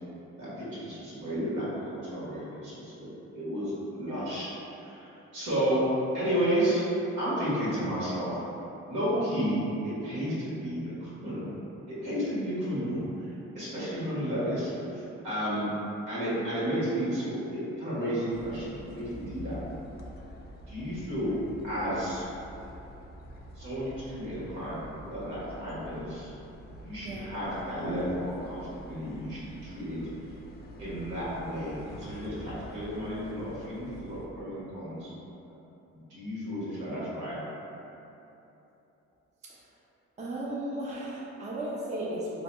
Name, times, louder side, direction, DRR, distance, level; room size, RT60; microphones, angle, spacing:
voice 1, 0.4-5.8 6.1-6.8 7.2-8.4 8.9-11.5 11.9-13.0 13.5-15.7 16.1-19.6 20.7-21.4 21.6-22.2 23.5-26.3 26.8-28.6 28.9-30.0 30.8-35.1 36.1-37.4, equal, 80° right, -10 dB, 1.5 m, -32 dB
sound 1, 18.3-34.3, left 1 dB, 35° left, 0.4 m, -47 dB
voice 2, 40.2-42.4, right 1 dB, 25° right, -6 dB, 0.5 m, -35 dB
4.0 x 2.7 x 2.2 m, 3.0 s
cardioid pair, 90°, 30 cm